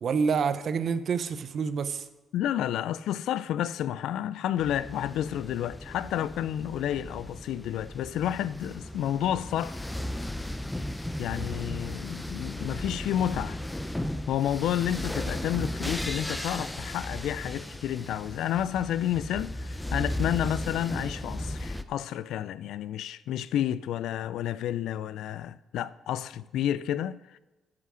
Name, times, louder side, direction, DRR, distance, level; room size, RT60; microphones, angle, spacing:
voice 1, 0.0-2.1, right 6 dB, 55° right, 0.6 m, -27 dB
voice 2, 2.3-9.8 11.2-13.6 14.3-27.4, left 11 dB, 80° left, 0.3 m, -30 dB
sound 1, 4.6-21.8, left 1 dB, 10° left, 0.6 m, -36 dB
11.0 x 5.7 x 6.2 m
cardioid pair, 90°, 0 cm